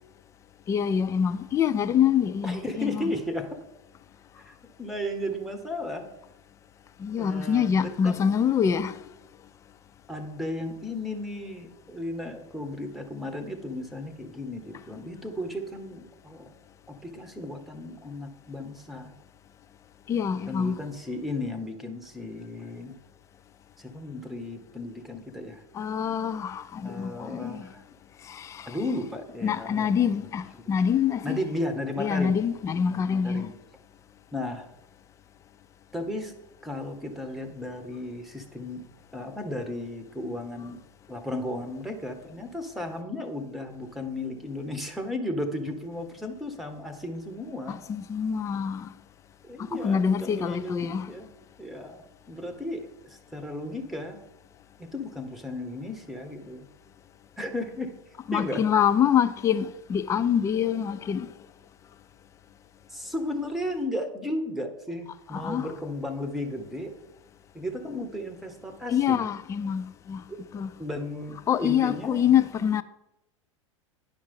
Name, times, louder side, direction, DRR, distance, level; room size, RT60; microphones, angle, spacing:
voice 1, 0.7-3.1 7.0-9.0 20.1-20.8 25.7-27.7 28.2-28.8 29.4-31.4 32.0-33.5 47.7-48.9 49.6-51.1 58.3-61.3 65.3-65.7 68.9-70.2 70.5-70.7 71.5-72.8, left 8 dB, 20° left, 0.4 m, -25 dB
voice 2, 2.4-3.6 4.4-6.0 7.2-8.2 10.1-16.5 16.9-19.1 20.5-22.9 23.8-25.6 26.8-27.8 28.7-30.6 31.2-32.4 32.9-33.5 34.3-34.7 35.9-36.3 36.6-38.8 39.1-40.8 41.1-47.8 49.4-54.2 54.8-56.7 57.4-57.9 58.3-58.6 62.9-66.9 67.5-69.3 70.3-70.4 70.8-72.3, left 1 dB, ahead, 1.2 m, -35 dB
10.5 x 5.1 x 5.4 m
figure-of-eight pair, 90°, 17 cm